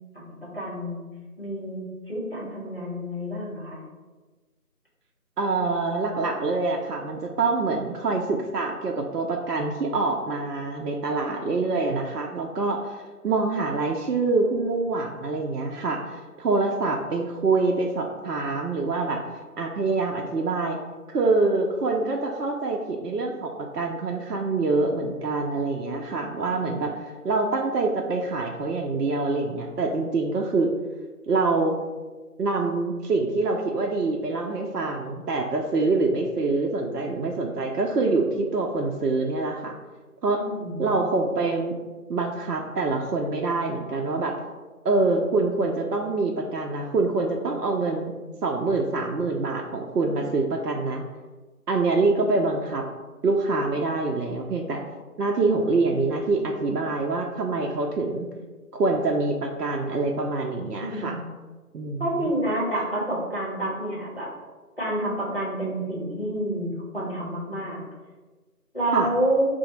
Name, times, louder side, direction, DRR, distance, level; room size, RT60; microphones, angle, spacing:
voice 1, 0.1-1.0 1.4-3.8 40.4-41.0 60.8-61.2 62.0-64.3 64.8-67.8 68.7-69.5, right 1 dB, 35° left, -6 dB, 1.0 m, -28 dB
voice 2, 5.4-19.2 19.6-20.8 21.1-30.7 31.3-31.8 32.4-39.8 40.2-40.4 40.8-41.8 42.1-44.4 44.8-48.1 48.4-51.0 51.7-52.9 53.2-54.8 55.2-58.3 58.7-61.2 61.7-62.3 68.9-69.1, right 3 dB, 75° right, 1 dB, 0.5 m, -25 dB
4.7 x 2.0 x 3.0 m, 1.3 s
figure-of-eight pair, 170°, 47 cm